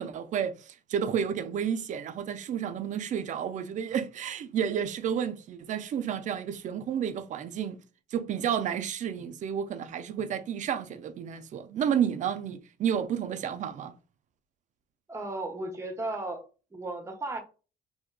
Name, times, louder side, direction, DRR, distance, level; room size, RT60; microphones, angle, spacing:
voice 1, 0.0-7.8 8.1-13.9, right 8 dB, 45° right, 0.4 m, -31 dB
voice 2, 15.1-16.4 16.7-17.4, right 2 dB, 15° right, 0.7 m, -35 dB
3.6 x 2.7 x 2.3 m
cardioid pair, 110°, 17 cm